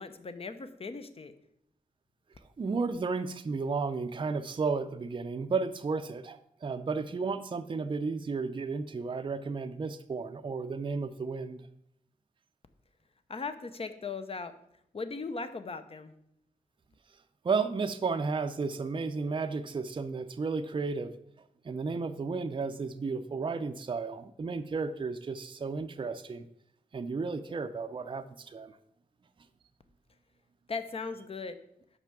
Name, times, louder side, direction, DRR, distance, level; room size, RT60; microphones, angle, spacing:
voice 1, 0.0-1.3 13.3-14.5 14.9-16.1 30.7-31.6, left 4 dB, 40° left, 10 dB, 0.7 m, -38 dB
voice 2, 2.6-11.6 17.4-21.1 21.6-26.5 26.9-28.8, right 4 dB, 35° right, 8 dB, 0.4 m, -33 dB
5.8 x 5.5 x 5.9 m, 0.75 s
wide cardioid pair, 90°, 14 cm